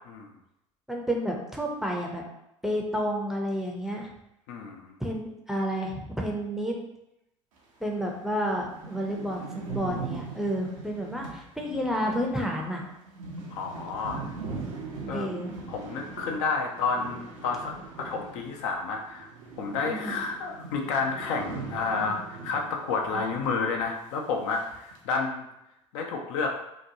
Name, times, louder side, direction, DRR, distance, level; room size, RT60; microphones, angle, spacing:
voice 1, 0.9-2.2 2.6-4.1 5.0-6.8 7.8-12.9 15.1-15.5 19.9-20.2, equal, ahead, -1 dB, 0.5 m, -30 dB
voice 2, 4.5-4.9 13.5-14.2 15.1-15.3 15.7-19.3 19.6-25.5 25.9-26.5, left 4 dB, 65° left, 1 dB, 0.5 m, -30 dB
sound 1, 7.8-7.9 8.3-8.4 8.5-18.8 19.0-23.5 23.8-23.9 24.5-25.0, right 4 dB, 80° right, 0.6 m, -40 dB
2.8 x 2.2 x 2.6 m, 0.85 s
hypercardioid pair, 70°, 17 cm